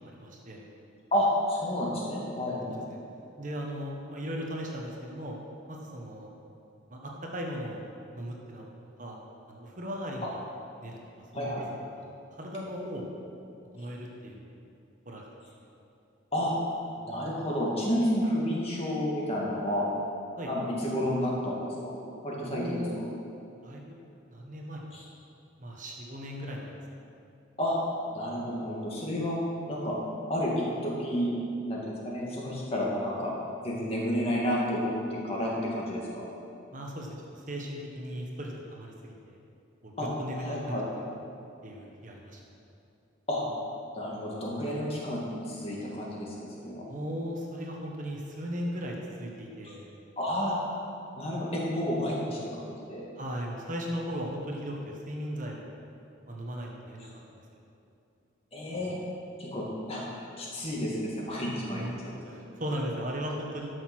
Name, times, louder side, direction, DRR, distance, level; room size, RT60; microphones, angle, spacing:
voice 1, 0.0-0.7 2.7-3.0 3.4-5.4 5.7-6.3 6.9-7.8 8.1-8.7 9.0-9.2 9.5-10.4 10.8-11.0 11.3-11.6 12.0-12.1 12.3-13.1 13.7-14.5 15.0-15.2 20.4-20.5 22.5-23.0 23.6-23.9 24.3-25.0 25.6-26.7 36.7-39.4 39.8-40.7 41.6-42.4 46.9-49.9 53.2-55.7 56.3-57.1 61.7-63.7, equal, 40° right, -1 dB, 1.2 m, -37 dB
voice 2, 1.1-2.6 11.3-11.6 16.3-16.5 17.1-19.9 20.5-21.6 21.8-22.0 22.2-22.8 24.9-25.0 27.6-27.8 28.1-29.4 29.7-29.9 30.3-31.3 31.7-33.3 33.6-36.3 40.0-40.1 40.3-40.8 43.3-43.4 44.0-46.3 46.6-46.9 49.6-49.7 50.2-50.6 51.1-53.0 58.5-58.9 59.4-60.0 60.4-61.9, equal, 30° left, -4 dB, 2.2 m, -30 dB
12.0 x 6.5 x 6.2 m, 2.7 s
head